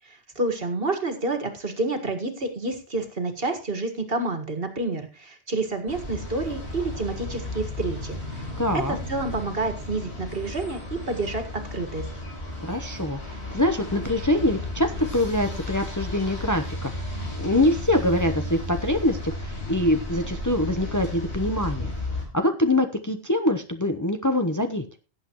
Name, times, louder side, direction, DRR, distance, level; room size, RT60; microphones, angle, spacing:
voice 1, 0.4-8.4 8.7-8.8 9.1-12.0, right 2 dB, 55° right, 7 dB, 2.1 m, -29 dB
sound 1, 5.9-22.3, left 2 dB, 70° left, 4.7 m, -34 dB
voice 2, 8.6-9.0 12.6-17.1 17.3-21.9 22.3-24.9, left 1 dB, 20° left, 6 dB, 0.9 m, -24 dB
17.5 x 8.3 x 3.1 m, 0.34 s
omnidirectional pair, 1.1 m